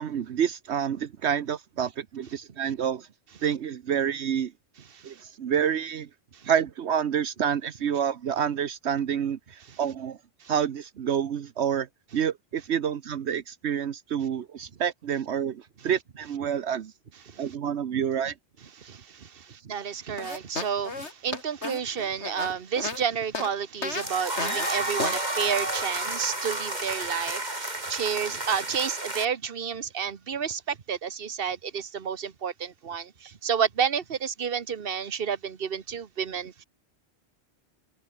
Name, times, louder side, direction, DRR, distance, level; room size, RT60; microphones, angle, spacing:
voice 1, 0.0-3.1 3.4-4.5 5.0-6.1 6.4-10.2 10.5-11.9 12.1-16.9 17.4-18.3, right 8 dB, 75° right, 1.2 m, -28 dB
voice 2, 18.8-36.6, right 7 dB, 55° right, 1.4 m, -31 dB
sound 1, 20.2-23.0 23.3-23.5 23.8-24.1 24.4-24.7 25.0-25.2, left 3 dB, 85° left, 2.9 m, -33 dB
sound 2, 24.0-29.3, right 2 dB, 40° right, 4.2 m, -31 dB
omnidirectional pair, 1.1 m